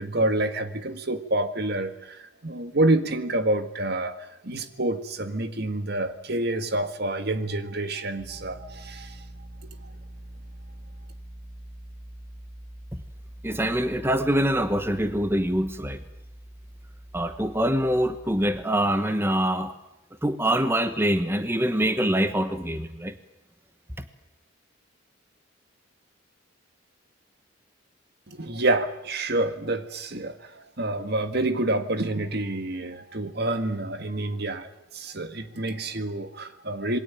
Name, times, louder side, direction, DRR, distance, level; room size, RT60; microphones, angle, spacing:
voice 1, 0.0-4.2 4.4-9.2 28.3-37.0, right 2 dB, 55° right, 9 dB, 1.8 m, -28 dB
sound 1, 8.2-18.6, right 1 dB, 30° right, 5.6 m, -44 dB
voice 2, 13.4-16.0 17.1-19.7 20.2-23.2, right 1 dB, 10° right, 9 dB, 1.1 m, -24 dB
27.0 x 21.5 x 9.0 m, 0.89 s
head